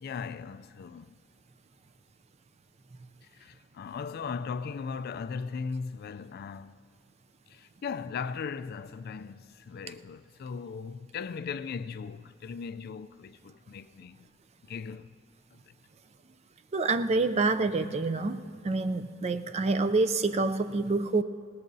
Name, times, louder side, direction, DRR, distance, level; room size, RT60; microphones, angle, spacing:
voice 1, 0.0-1.1 3.3-6.7 7.5-14.2 14.7-15.1 15.5-15.7, left 5 dB, 50° left, 0.3 m, -38 dB
voice 2, 16.7-18.4 18.6-21.2, right 3 dB, 30° right, 0.4 m, -27 dB
20.5 x 18.0 x 2.7 m
head